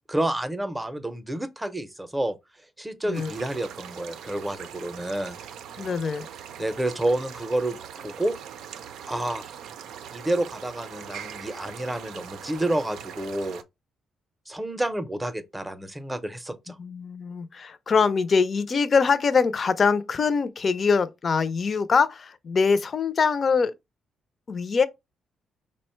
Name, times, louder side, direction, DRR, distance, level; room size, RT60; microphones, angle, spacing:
voice 1, 0.1-2.4 2.8-5.4 6.6-8.4 9.1-9.5 10.1-13.6 14.5-16.8, right 1 dB, 10° right, 0.6 m, -29 dB
sound 1, 3.1-13.6, right 8 dB, 85° right, 0.5 m, -41 dB
voice 2, 5.8-6.3 16.8-23.7 24.5-24.9, left 5 dB, 45° left, 0.5 m, -23 dB
5.0 x 2.1 x 4.4 m
cardioid pair, 95°, 0 cm